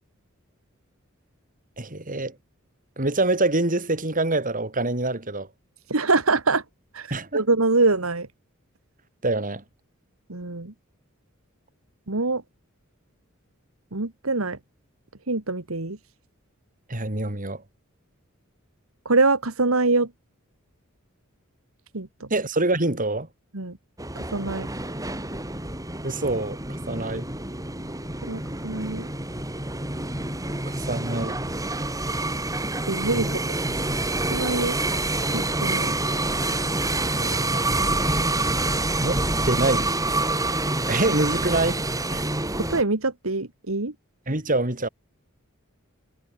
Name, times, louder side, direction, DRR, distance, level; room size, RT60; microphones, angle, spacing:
voice 1, 1.8-2.4 3.0-5.5 7.1-7.4 9.2-9.6 16.9-17.6 22.3-23.3 26.0-26.6 26.9-27.3 30.7-31.4 33.1-33.4 33.7-34.0 37.2-37.6 39.0-39.9 40.9-41.8 42.1-42.2 44.3-44.9, right 2 dB, 40° right, 4.3 m, -25 dB
voice 2, 5.9-6.6 6.9-8.3 10.3-10.7 12.1-12.4 13.9-14.6 15.3-16.0 19.1-20.1 21.9-22.3 23.5-23.8 24.2-24.7 28.2-29.1 32.9-33.3 34.3-34.8 35.3-35.9 42.5-43.9, right 3 dB, 90° right, 2.1 m, -24 dB
sound 1, 24.0-42.8, right 2 dB, 15° right, 7.1 m, -27 dB
head